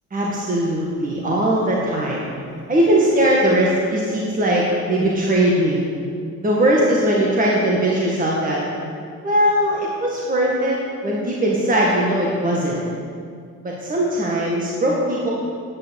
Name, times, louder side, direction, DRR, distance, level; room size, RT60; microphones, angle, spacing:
voice 1, 0.1-2.2 2.7-5.8 6.4-8.6 9.2-10.8 11.0-12.8 13.6-15.3, right 1 dB, 25° right, -4 dB, 1.8 m, -19 dB
9.5 x 8.7 x 6.5 m, 2.2 s
cardioid pair, 90°, 30 cm